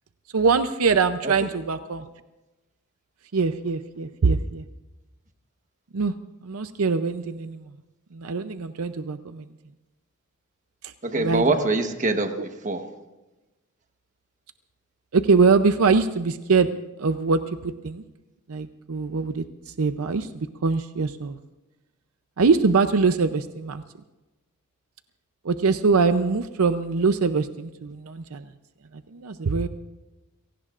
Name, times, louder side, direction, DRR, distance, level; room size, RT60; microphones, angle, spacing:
voice 1, 0.3-2.1 3.3-4.6 5.9-6.1 6.4-7.6 8.1-9.4 11.2-11.4 12.4-12.5 15.1-16.7 17.0-18.0 18.5-19.4 19.8-20.3 20.6-21.4 22.4-23.8 25.4-28.4 29.1-29.7, right 4 dB, 75° right, 10 dB, 0.6 m, -23 dB
voice 2, 11.0-12.3 12.6-12.9, right 3 dB, 35° right, 6 dB, 1.2 m, -23 dB
30.0 x 17.5 x 2.5 m, 1.1 s
head